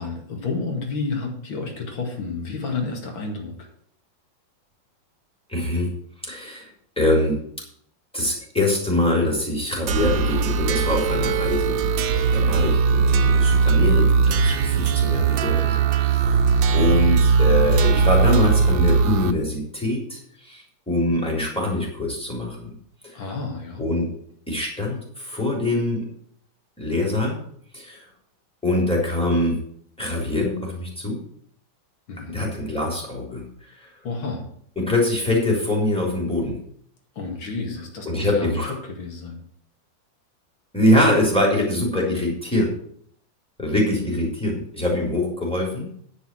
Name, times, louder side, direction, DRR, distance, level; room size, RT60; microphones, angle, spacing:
voice 1, 0.0-3.7 12.9-13.0 23.1-23.8 32.1-32.5 34.0-34.5 37.1-38.6 38.8-39.4, left 4 dB, 90° left, 2 dB, 2.9 m, -30 dB
voice 2, 5.5-5.9 6.2-6.7 7.0-7.4 8.1-11.9 12.3-16.4 16.7-22.7 23.0-23.2 23.8-24.1 24.5-26.1 26.8-27.4 27.7-28.1 28.6-29.6 30.0-31.2 32.3-33.5 33.8-33.9 34.8-36.6 38.1-38.7 40.7-42.7 43.6-45.9, left 1 dB, 5° left, -2 dB, 3.6 m, -23 dB
sound 1, 9.9-19.3, right 5 dB, 80° right, 1.5 m, -19 dB
10.0 x 5.7 x 7.6 m, 0.64 s
omnidirectional pair, 2.1 m